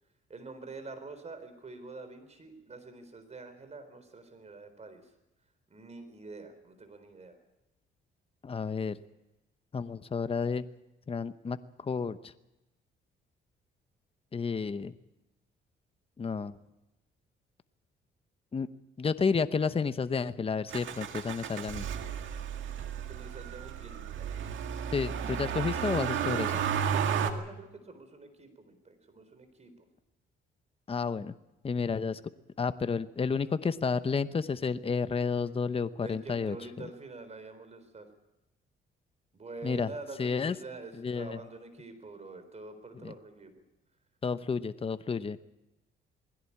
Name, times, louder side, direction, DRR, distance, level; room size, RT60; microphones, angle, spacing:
voice 1, 0.3-5.1 5.7-7.4 23.1-24.3 26.8-29.9 36.0-38.1 39.3-43.5, right 3 dB, 35° right, 9 dB, 4.2 m, -46 dB
voice 2, 8.4-9.0 9.7-10.7 11.1-12.3 14.3-14.9 16.2-16.6 18.5-18.7 19.0-21.8 24.9-26.5 30.9-31.3 31.6-32.2 32.6-36.9 39.6-39.9 40.2-40.6 40.9-41.4 43.0-43.1 44.2-45.4, left 5 dB, 30° left, 12 dB, 0.9 m, -31 dB
Motor vehicle (road), 20.7-27.3, right 8 dB, 75° right, 1.9 m, -33 dB
20.5 x 16.0 x 8.6 m, 0.94 s
cardioid pair, 90°, 20 cm